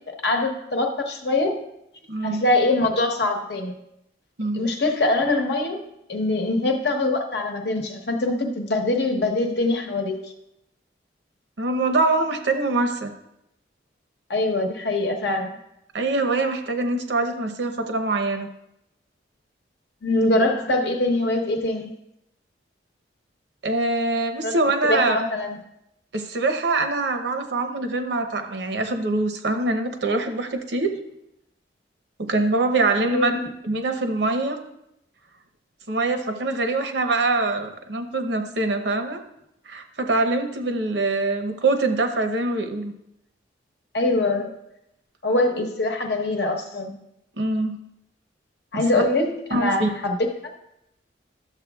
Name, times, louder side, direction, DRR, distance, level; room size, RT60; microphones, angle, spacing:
voice 1, 0.1-1.5 2.2-3.7 4.5-5.8 6.1-10.3 14.3-15.6 20.0-21.9 24.4-24.5 24.8-25.6 33.1-33.5 43.9-44.5 45.2-47.0 48.7-50.5, left 2 dB, 65° left, 2 dB, 1.0 m, -23 dB
voice 2, 2.1-2.4 4.4-4.7 11.6-13.1 15.9-18.5 23.6-25.2 26.1-30.9 32.2-33.3 33.6-34.6 35.9-39.2 39.7-42.9 47.4-47.8 48.7-48.8 49.5-49.9, right 2 dB, 70° right, 6 dB, 0.8 m, -24 dB
11.5 x 7.1 x 2.3 m, 0.82 s
head